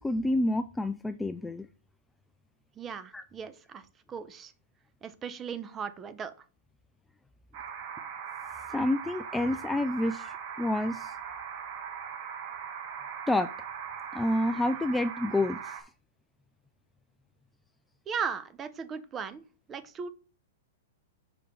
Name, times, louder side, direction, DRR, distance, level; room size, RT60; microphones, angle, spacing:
voice 1, 0.0-1.7 3.1-3.2 8.7-11.1 13.3-13.5 14.1-15.8, left 1 dB, 5° left, 10 dB, 0.3 m, -28 dB
voice 2, 2.8-4.5 5.0-6.3 18.1-19.4 19.7-20.1, right 6 dB, 20° right, 13 dB, 0.8 m, -37 dB
sound 1, 7.5-15.8, right 7 dB, 50° right, 2.0 m, -40 dB
5.9 x 5.0 x 5.4 m, 0.37 s
hypercardioid pair, 125°, 0 cm